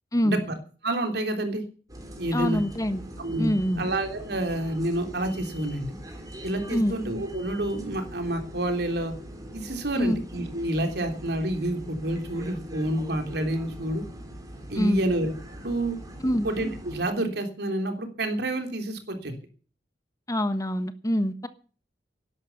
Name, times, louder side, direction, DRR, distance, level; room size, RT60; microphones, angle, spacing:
voice 1, 0.1-0.4 2.3-3.0 3.4-3.9 6.7-6.9 10.0-10.2 14.8-15.0 16.2-16.5 20.3-21.5, equal, 20° left, 11 dB, 1.3 m, -25 dB
voice 2, 0.8-1.6 2.2-2.6 3.2-3.5 3.8-5.9 6.4-9.1 9.5-14.0 14.7-15.3 15.6-16.0 16.4-19.4, right 1 dB, 65° right, 6 dB, 3.4 m, -28 dB
sound 1, 1.9-17.0, equal, 20° right, 3.9 m, -42 dB
12.0 x 11.5 x 8.2 m, 0.40 s
head